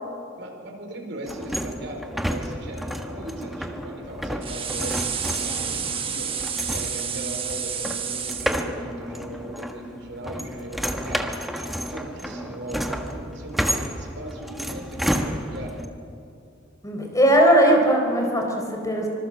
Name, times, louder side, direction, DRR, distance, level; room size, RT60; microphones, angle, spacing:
voice 1, 0.4-15.9, right 1 dB, 65° right, 2 dB, 4.6 m, -38 dB
sound 1, 1.3-15.9, equal, ahead, 1.4 m, -31 dB
sound 2, 4.4-8.6, right 7 dB, 30° right, 1.3 m, -30 dB
voice 2, 16.8-19.1, right 1 dB, 15° left, 2 dB, 4.2 m, -19 dB
25.5 x 25.0 x 7.5 m, 2.5 s
head